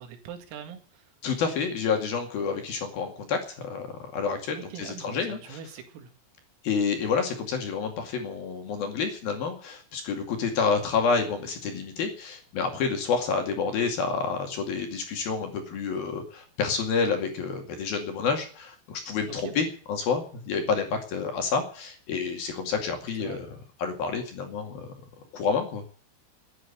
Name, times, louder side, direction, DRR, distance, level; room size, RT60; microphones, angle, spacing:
voice 1, 0.0-1.0 4.6-6.1 19.3-19.6 23.2-23.4, right 8 dB, 85° right, 6 dB, 4.8 m, -42 dB
voice 2, 1.2-5.6 6.6-23.5 23.8-24.9 25.3-25.8, left 5 dB, 55° left, 4 dB, 3.6 m, -29 dB
13.0 x 10.0 x 9.9 m, 0.43 s
omnidirectional pair, 6.0 m